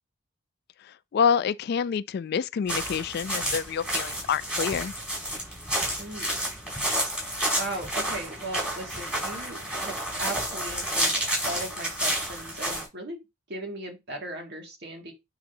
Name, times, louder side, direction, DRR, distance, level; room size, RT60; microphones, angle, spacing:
voice 1, 1.1-4.9, left 7 dB, 50° left, 0.3 m, -27 dB
sound 1, 2.7-12.9, right 1 dB, 5° right, 4.6 m, -30 dB
voice 2, 6.0-6.3 7.6-13.2 13.5-15.1, right 1 dB, 55° right, 2.0 m, -37 dB
9.5 x 4.0 x 2.7 m
head